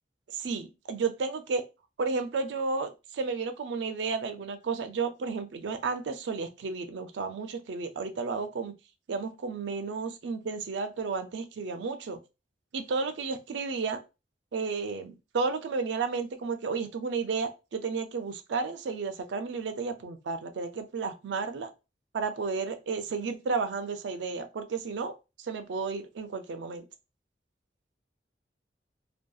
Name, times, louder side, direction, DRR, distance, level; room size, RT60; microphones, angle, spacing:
voice 1, 0.3-1.6 2.0-8.7 9.1-12.2 12.7-14.0 14.5-21.7 22.1-25.1 25.4-26.8, right 4 dB, 75° right, 8 dB, 0.4 m, -32 dB
2.6 x 2.2 x 2.3 m, 0.28 s
head